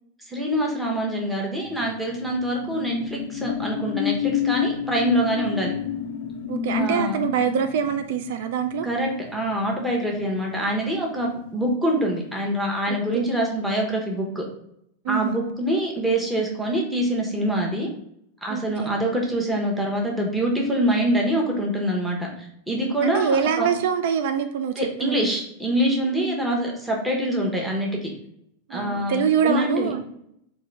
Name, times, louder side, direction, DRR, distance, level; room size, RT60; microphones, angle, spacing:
voice 1, 0.3-5.7 6.7-7.1 8.8-14.4 15.1-17.9 18.4-23.7 24.8-27.9 28.7-29.9, right 1 dB, 5° right, -2 dB, 0.8 m, -25 dB
sound 1, 1.7-10.7 11.1-11.3, left 9 dB, 60° left, 0.3 m, -30 dB
voice 2, 6.5-8.9 12.9-13.3 15.0-15.4 18.5-19.0 23.0-25.3 28.7-30.0, right 7 dB, 65° right, 8 dB, 0.3 m, -25 dB
3.7 x 2.6 x 3.1 m, 0.75 s
supercardioid pair, 140°, 0 cm